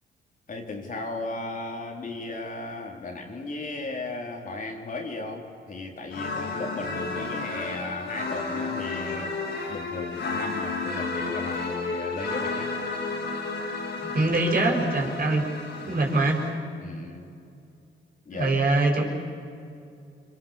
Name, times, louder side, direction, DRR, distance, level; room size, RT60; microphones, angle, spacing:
voice 1, 0.5-9.3 9.7-12.7 15.8-16.0 16.8-17.3 18.3-18.5, left 2 dB, 40° left, 1 dB, 4.1 m, -35 dB
sound 1, 6.1-16.5, left 3 dB, 65° left, 6.0 m, -32 dB
voice 2, 14.0-15.5 15.9-16.4 18.3-19.0, right 2 dB, 50° right, 0 dB, 6.3 m, -23 dB
30.0 x 24.5 x 7.5 m, 2.5 s
cardioid pair, 90°, 20 cm